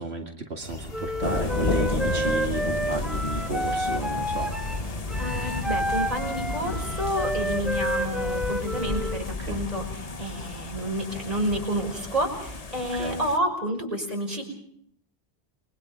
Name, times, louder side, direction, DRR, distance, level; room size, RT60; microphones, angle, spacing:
voice 1, 0.0-4.5 9.4-9.6 12.9-13.2, right 2 dB, 85° right, 1 dB, 2.4 m, -33 dB
sound 1, 0.6-8.9, equal, 75° left, 2.7 m, -40 dB
Wind instrument woodwind instrument, 0.9-9.3, equal, ahead, 1.5 m, -30 dB
sound 2, 1.2-13.4, left 3 dB, 40° left, 1.2 m, -32 dB
voice 2, 5.2-14.4, equal, 35° right, 1 dB, 6.1 m, -29 dB
29.5 x 22.5 x 5.1 m, 0.68 s
omnidirectional pair, 1.0 m